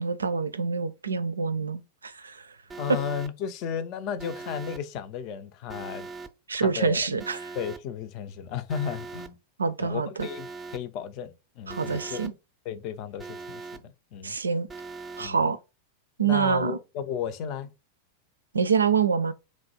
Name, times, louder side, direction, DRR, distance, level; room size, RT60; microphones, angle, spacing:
voice 1, 0.0-2.4 6.5-7.5 9.6-10.3 11.7-12.3 14.2-14.7 15.2-15.6 16.2-16.8 18.5-19.3, right 5 dB, 75° right, 0.4 m, -26 dB
Alarm, 2.7-3.3 4.2-4.8 5.7-6.3 7.2-7.8 8.7-9.3 10.2-10.8 11.7-12.3 13.2-13.8 14.7-15.3, right 4 dB, 15° right, 0.5 m, -40 dB
voice 2, 2.8-6.1 6.5-7.0 7.5-9.4 9.8-12.2 12.7-14.4 15.2-15.4 16.2-17.7, left 7 dB, 40° left, 0.5 m, -34 dB
3.1 x 2.5 x 4.0 m
figure-of-eight pair, 90°, 0 cm